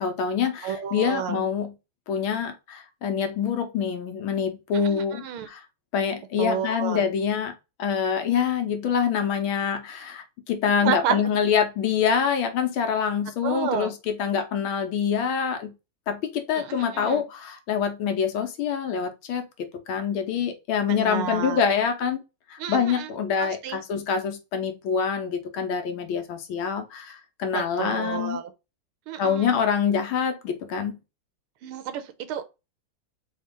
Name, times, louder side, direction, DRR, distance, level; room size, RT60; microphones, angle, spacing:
voice 1, 0.0-1.7 2.1-5.6 5.9-7.5 7.8-15.7 16.1-22.2 22.5-28.4 29.2-31.0, left 7 dB, 70° left, 1.6 m, -26 dB
voice 2, 0.6-1.4 4.8-5.5 6.4-7.1 10.8-11.2 13.4-13.9 16.5-17.3 20.9-21.6 22.6-23.1 23.4-23.8 27.5-28.4 29.1-29.5 31.6-32.5, right 8 dB, 80° right, 1.5 m, -30 dB
4.3 x 3.0 x 3.6 m
omnidirectional pair, 2.4 m